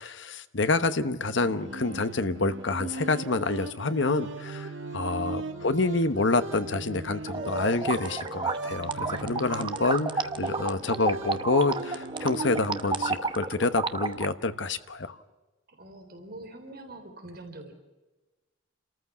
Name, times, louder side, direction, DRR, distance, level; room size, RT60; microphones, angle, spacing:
voice 1, 0.0-15.2, left 3 dB, 70° left, 11 dB, 1.1 m, -28 dB
sound 1, 1.3-13.2, right 2 dB, 70° right, 1.8 m, -38 dB
voice 2, 5.1-5.8 15.7-17.7, right 1 dB, 50° right, 4 dB, 3.6 m, -45 dB
sound 2, 7.3-14.3, right 4 dB, 25° right, 0.9 m, -31 dB
29.5 x 14.0 x 7.4 m, 1.1 s
head